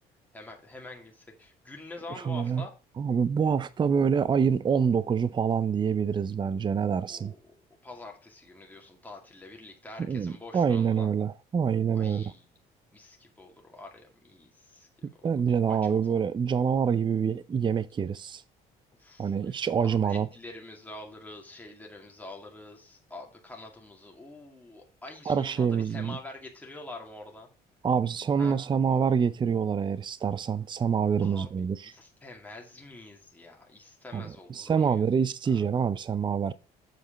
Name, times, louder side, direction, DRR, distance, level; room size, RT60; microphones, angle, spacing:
voice 1, 0.3-2.7 7.1-7.4 7.8-11.1 11.9-12.4 12.9-14.9 19.0-27.5 28.4-28.6 31.2-31.5 31.8-35.0 35.5-35.6, left 2 dB, 10° left, 2.3 m, -46 dB
voice 2, 2.2-2.6 3.0-7.3 10.1-12.3 15.0-18.4 19.2-20.3 25.3-26.2 27.8-31.9 34.1-36.5, right 7 dB, 25° right, 0.6 m, -26 dB
7.8 x 4.9 x 5.2 m
cardioid pair, 110°, 17 cm